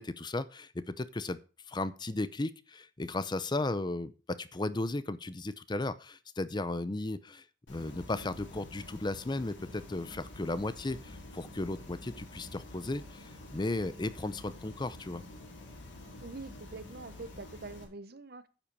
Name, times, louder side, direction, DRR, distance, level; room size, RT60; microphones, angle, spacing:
voice 1, 0.0-1.4 1.7-7.4 7.7-15.2, left 2 dB, 25° left, 15 dB, 0.6 m, -35 dB
sound 1, 7.7-17.8, left 1 dB, 85° left, 3.9 m, -48 dB
voice 2, 16.2-18.5, right 3 dB, 60° right, 14 dB, 1.0 m, -45 dB
9.8 x 7.3 x 5.4 m, 0.34 s
head